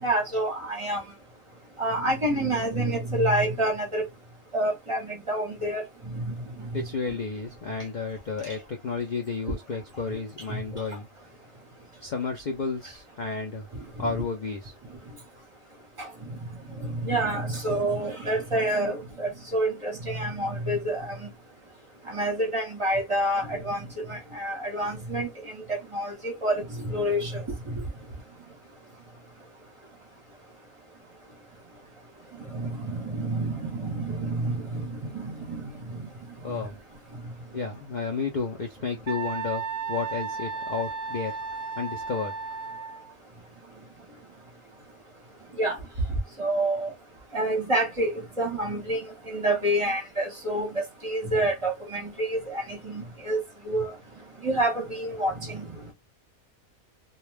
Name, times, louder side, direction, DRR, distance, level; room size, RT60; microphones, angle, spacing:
voice 1, 0.0-1.0 1.8-4.1 4.5-6.9 10.5-10.8 14.0-14.2 16.0-16.1 16.7-21.3 22.1-27.8 32.4-36.1 36.5-36.6 45.6-45.8 46.4-46.9 47.3-53.9 54.4-55.8, right 1 dB, 30° right, 0.7 m, -28 dB
voice 2, 6.7-11.1 12.0-13.7 14.0-14.7 36.4-36.8 37.5-41.4 41.8-42.3, left 4 dB, 75° left, 0.4 m, -32 dB
Wind instrument woodwind instrument, 39.1-43.1, right 5 dB, 65° right, 0.7 m, -34 dB
2.3 x 2.2 x 3.2 m
omnidirectional pair, 1.4 m